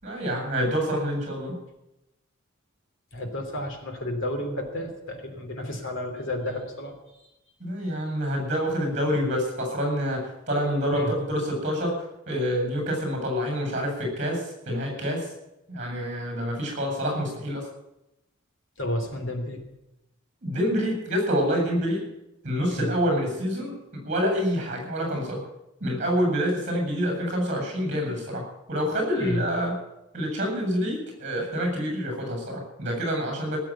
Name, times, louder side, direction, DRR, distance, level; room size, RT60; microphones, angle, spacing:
voice 1, 0.0-1.6 7.6-15.3 15.7-17.7 20.4-22.0 22.4-25.4 25.8-29.8 30.1-33.6, equal, 35° right, 2 dB, 7.8 m, -27 dB
voice 2, 3.1-6.9 10.9-11.1 18.8-19.6 22.7-22.9 29.2-29.4, left 1 dB, 65° left, 4 dB, 3.2 m, -31 dB
18.0 x 7.8 x 9.0 m, 0.91 s
head